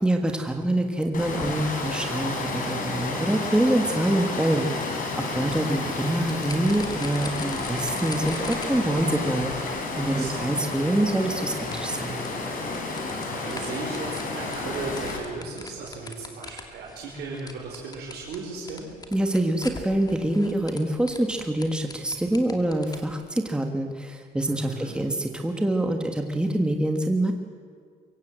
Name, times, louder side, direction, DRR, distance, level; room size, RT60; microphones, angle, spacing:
voice 1, 0.0-12.2 19.1-27.3, right 1 dB, 5° right, 4 dB, 1.7 m, -25 dB
Water, 1.1-15.2, left 3 dB, 55° left, 5.1 m, -31 dB
sound 1, 6.3-23.1, left 3 dB, 25° left, 2.5 m, -43 dB
voice 2, 10.1-10.5 12.8-18.9 24.5-25.0, right 3 dB, 70° right, -3 dB, 4.9 m, -36 dB
23.5 x 16.5 x 7.7 m, 2.1 s
cardioid pair, 110°, 17 cm